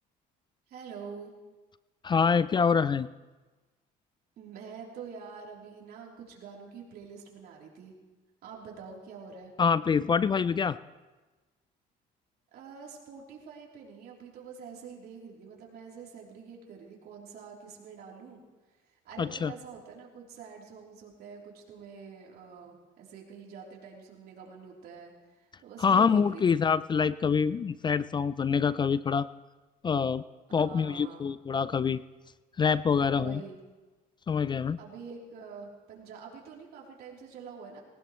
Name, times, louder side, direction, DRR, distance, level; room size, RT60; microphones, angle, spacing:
voice 1, 0.7-1.3 4.4-7.9 8.4-9.5 12.5-18.4 19.1-25.1 25.4-26.6 30.5-31.3 33.1-33.6 34.8-37.8, right 6 dB, 70° right, -2 dB, 3.5 m, -46 dB
voice 2, 2.0-3.1 9.6-10.8 19.2-19.5 25.8-29.3 29.8-30.2 30.5-32.0 32.6-33.4 34.3-34.8, left 6 dB, 25° left, 17 dB, 0.4 m, -25 dB
19.5 x 18.5 x 3.1 m, 1.2 s
cardioid pair, 110°, 17 cm